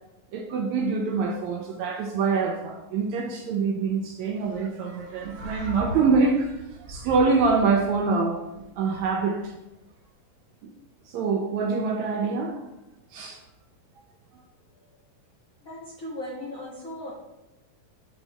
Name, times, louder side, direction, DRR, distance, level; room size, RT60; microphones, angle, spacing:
voice 1, 0.3-6.5 6.9-8.4 8.8-9.5 11.1-12.6 13.1-13.4, right 4 dB, 80° right, 2 dB, 1.7 m, -25 dB
sound 1, 4.4-9.5, equal, 55° right, 1.5 m, -40 dB
voice 2, 15.6-17.1, left 1 dB, 55° left, -6 dB, 0.9 m, -37 dB
7.2 x 5.3 x 4.2 m, 0.98 s
omnidirectional pair, 3.7 m